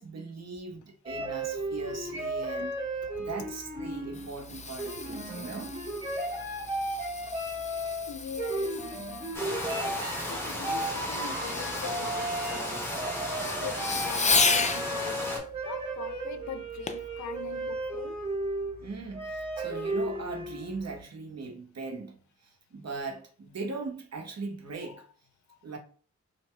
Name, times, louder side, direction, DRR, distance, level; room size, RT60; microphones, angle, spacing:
voice 1, 0.0-2.8 3.2-5.7 18.8-25.0 25.6-25.8, right 4 dB, 65° right, 0.9 m, -39 dB
sound 1, 1.1-21.0, right 1 dB, 20° right, 1.4 m, -35 dB
Fireworks, 3.9-14.9 16.9-17.1 17.7-17.8, left 4 dB, 25° left, 0.4 m, -34 dB
voice 2, 7.7-8.8 9.3-12.9 13.6-18.2 24.8-25.1 25.5-25.8, left 8 dB, 80° left, 0.5 m, -42 dB
sound 2, 9.3-15.4, equal, 10° left, 1.6 m, -35 dB
4.6 x 2.7 x 2.2 m
cardioid pair, 60°, 29 cm